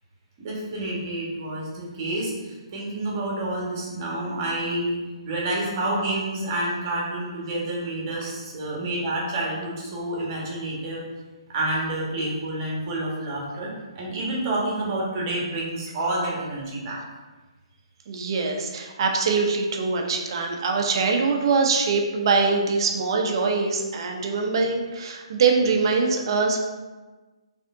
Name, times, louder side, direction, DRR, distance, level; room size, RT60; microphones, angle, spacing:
voice 1, 0.4-5.0 5.2-11.0 11.5-13.7 13.9-17.0, right 1 dB, 35° right, -4 dB, 1.5 m, -28 dB
voice 2, 18.1-26.6, right 4 dB, 50° right, 2 dB, 0.7 m, -23 dB
4.1 x 3.4 x 3.8 m, 1.2 s
hypercardioid pair, 155°, 3 cm